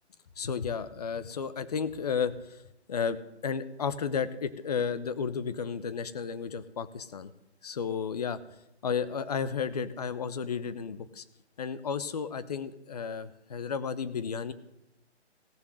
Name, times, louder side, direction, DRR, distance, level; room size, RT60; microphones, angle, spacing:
voice 1, 0.4-2.6 2.9-7.3 7.6-8.4 8.8-11.2 11.6-14.5, left 6 dB, 35° left, 14 dB, 0.9 m, -33 dB
17.0 x 7.0 x 6.2 m, 0.87 s
hypercardioid pair, 160°, 34 cm